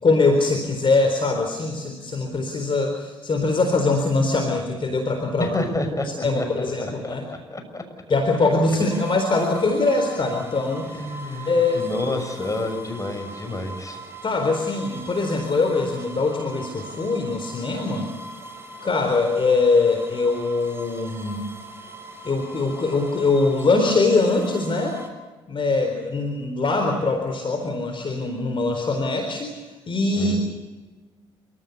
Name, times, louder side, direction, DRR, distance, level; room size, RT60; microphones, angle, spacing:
voice 1, 0.0-5.5 6.2-7.2 8.1-11.0 11.5-11.9 14.2-18.1 18.8-21.4 22.2-25.0 25.5-30.4, left 3 dB, 45° left, 4 dB, 4.1 m, -22 dB
voice 2, 5.4-7.8 10.9-14.0 30.2-30.4, left 2 dB, 25° left, 6 dB, 6.5 m, -29 dB
sound 1, 8.9-25.1, equal, 20° right, 5.6 m, -41 dB
29.0 x 15.0 x 8.3 m, 1.3 s
hypercardioid pair, 45°, 12 cm